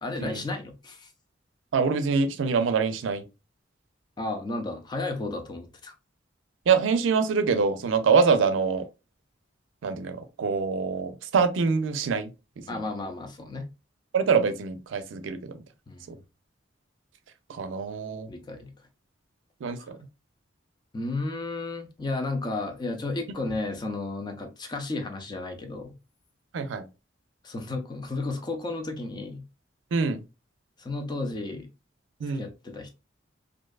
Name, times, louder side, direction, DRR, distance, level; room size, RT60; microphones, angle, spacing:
voice 1, 0.0-1.1 4.2-5.9 12.7-13.7 15.9-16.1 18.3-18.7 19.8-19.9 20.9-25.9 27.4-29.4 30.8-31.7 32.3-32.9, left 2 dB, 25° left, 0.4 m, -33 dB
voice 2, 1.7-3.2 6.7-8.9 9.8-12.3 12.6-12.8 14.1-15.6 16.1-16.2 17.5-18.3 19.6-20.0 26.5-26.9 29.9-30.2 32.2-32.5, right 5 dB, 85° right, 0.4 m, -25 dB
2.5 x 2.2 x 2.3 m
head